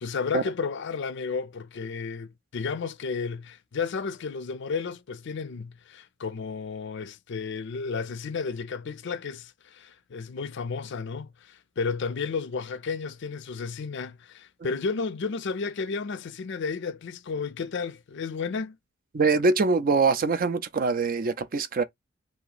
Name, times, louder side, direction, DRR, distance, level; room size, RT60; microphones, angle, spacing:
voice 1, 0.0-18.8, left 5 dB, 60° left, 0.4 m, -32 dB
voice 2, 19.1-21.8, right 4 dB, 45° right, 0.4 m, -23 dB
2.9 x 2.5 x 3.9 m
head